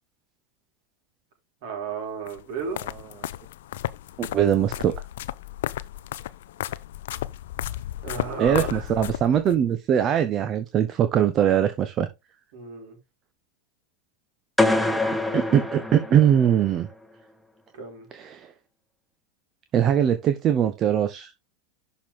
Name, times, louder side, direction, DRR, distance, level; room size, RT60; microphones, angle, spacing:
voice 1, 1.6-2.8 8.0-9.0 12.5-13.0 17.7-18.1, right 5 dB, 55° right, 4.3 m, -33 dB
sound 1, 2.3-9.6, left 13 dB, 65° left, 0.5 m, -33 dB
voice 2, 4.2-4.9 8.4-12.1 15.3-16.9 18.1-18.5 19.7-21.3, right 9 dB, 35° right, 1.0 m, -21 dB
sound 2, 14.6-16.7, left 2 dB, ahead, 1.3 m, -25 dB
11.5 x 4.7 x 3.7 m
figure-of-eight pair, 85°, 0 cm